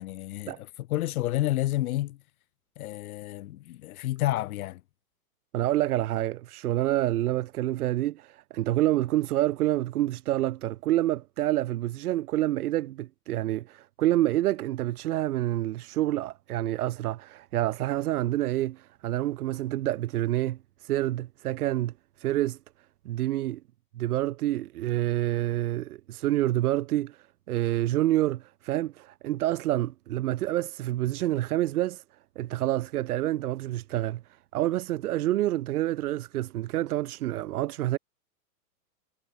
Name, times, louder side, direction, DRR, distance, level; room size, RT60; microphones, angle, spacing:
voice 1, 0.0-2.2 2.8-4.8, left 15 dB, 60° left, 1.5 m, -30 dB
voice 2, 5.5-22.6 23.0-23.6 23.9-32.0 32.3-34.2 34.5-38.0, right 14 dB, 65° right, 1.4 m, -28 dB
hypercardioid pair, 135°, 47 cm